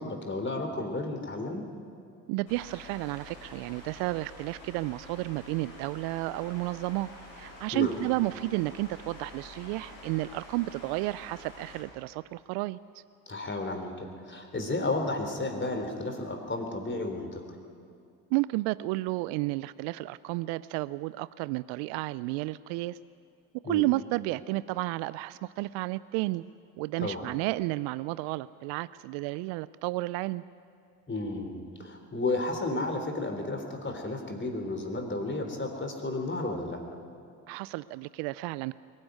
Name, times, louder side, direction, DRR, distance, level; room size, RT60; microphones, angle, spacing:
voice 1, 0.0-1.7 7.7-7.9 13.3-17.4 23.6-23.9 27.0-27.2 31.1-36.8, left 2 dB, 25° left, 4 dB, 3.8 m, -32 dB
voice 2, 2.3-7.1 7.4-13.0 18.3-23.0 23.7-26.4 26.8-30.4 37.5-38.7, right 20 dB, 70° right, 18 dB, 0.5 m, -32 dB
sound 1, 2.5-11.8, left 1 dB, 85° left, 7.8 m, -48 dB
21.5 x 14.5 x 9.8 m, 2.5 s
hypercardioid pair, 55°, 43 cm